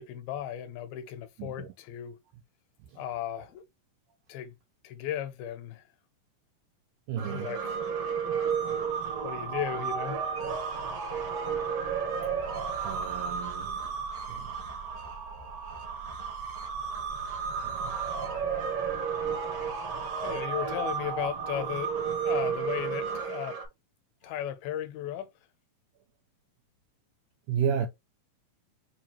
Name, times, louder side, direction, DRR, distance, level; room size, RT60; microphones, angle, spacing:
voice 1, 0.0-2.2 3.0-3.6 4.3-4.5 4.8-5.9 7.3-7.8 9.2-10.2 20.2-21.9 22.2-23.6 24.2-25.3, left 11 dB, 85° left, 2.6 m, -35 dB
voice 2, 7.1-7.6 12.8-13.8 14.3-14.5 17.6-18.0 27.5-27.9, right 8 dB, 90° right, 1.8 m, -32 dB
sound 1, 7.2-23.6, right 6 dB, 65° right, 1.3 m, -33 dB
6.6 x 2.3 x 2.9 m
omnidirectional pair, 4.3 m